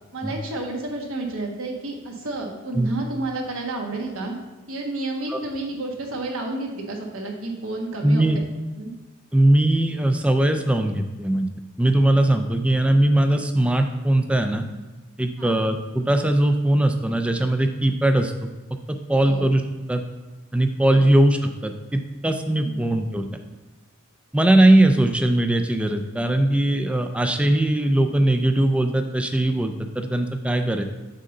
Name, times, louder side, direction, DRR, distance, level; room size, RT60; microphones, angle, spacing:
voice 1, 0.1-4.4 4.7-8.4 8.8-8.9 15.4-15.6 19.2-19.5 20.9-21.0 22.6-22.8, right 2 dB, 70° right, 1 dB, 1.2 m, -30 dB
voice 2, 8.0-8.4 9.3-11.5 11.8-14.6 15.2-18.3 18.9-19.6 19.9-20.0 20.5-23.3 24.3-30.8, right 1 dB, 5° right, 6 dB, 0.3 m, -20 dB
6.5 x 5.3 x 3.8 m, 1.2 s
head